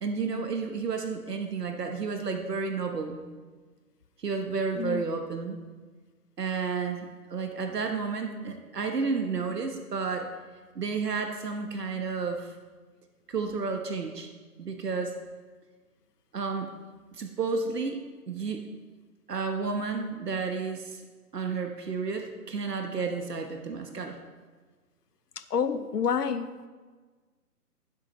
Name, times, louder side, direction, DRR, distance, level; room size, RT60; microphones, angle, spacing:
voice 1, 0.0-3.2 4.2-5.6 6.4-10.3 10.7-12.6 13.3-14.3 14.6-15.2 16.3-16.7 17.1-18.0 18.3-18.6 19.3-21.0 21.3-24.2, right 4 dB, 75° right, 4 dB, 1.2 m, -31 dB
voice 2, 25.5-26.5, left 7 dB, 75° left, 12 dB, 0.9 m, -28 dB
15.5 x 7.7 x 3.1 m, 1.4 s
figure-of-eight pair, 145°, 48 cm